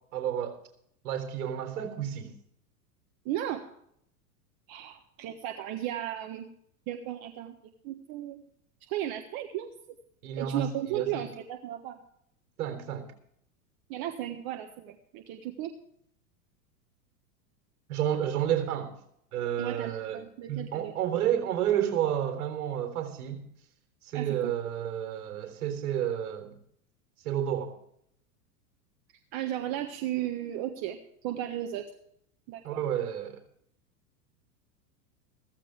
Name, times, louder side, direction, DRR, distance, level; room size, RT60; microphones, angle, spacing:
voice 1, 0.1-0.6 1.0-2.4 10.2-11.2 12.6-13.1 17.9-18.9 19.3-23.4 24.0-26.6 27.2-27.8 32.6-33.4, right 10 dB, 70° right, 6 dB, 3.7 m, -31 dB
voice 2, 3.2-3.6 4.7-6.5 6.9-7.5 7.8-8.4 8.9-9.7 10.4-12.0 13.9-15.7 19.6-20.9 24.1-24.5 29.3-31.8 32.5-32.8, right 12 dB, 50° right, 5 dB, 1.5 m, -35 dB
15.5 x 15.0 x 3.4 m, 0.69 s
hypercardioid pair, 105°, 46 cm